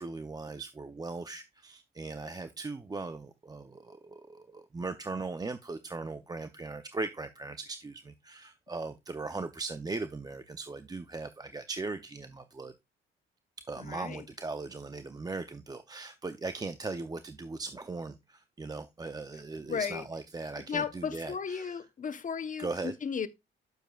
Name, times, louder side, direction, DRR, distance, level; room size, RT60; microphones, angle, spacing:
voice 1, 0.0-12.7 13.7-21.8 22.6-22.9, right 3 dB, 20° right, 0.6 m, -39 dB
voice 2, 13.8-14.2 19.7-20.0 20.7-23.3, left 6 dB, 40° left, 1.0 m, -35 dB
9.1 x 7.0 x 2.4 m
cardioid pair, 90°, 20 cm